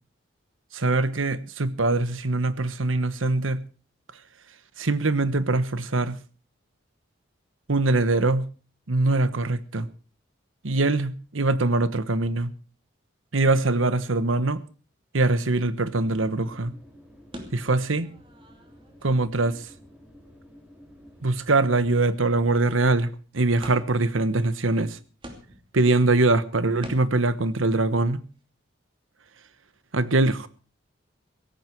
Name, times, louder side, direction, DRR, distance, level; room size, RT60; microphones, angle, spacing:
voice 1, 0.7-3.6 4.8-6.2 7.7-8.5 8.9-9.9 10.6-12.5 13.3-14.6 15.1-16.7 17.5-18.1 19.0-19.7 21.2-25.0 25.7-28.2 29.9-30.5, right 2 dB, 90° right, 15 dB, 1.2 m, -23 dB
sound 1, 15.9-22.2, equal, 5° right, 4.1 m, -52 dB
sound 2, 17.3-19.9 20.3-20.4 21.0-21.1 21.4-21.5 21.7-22.7 23.6-24.1 24.8-24.9 25.2-25.8 26.8-27.3, equal, 25° right, 2.7 m, -44 dB
17.0 x 14.5 x 4.7 m, 0.37 s
head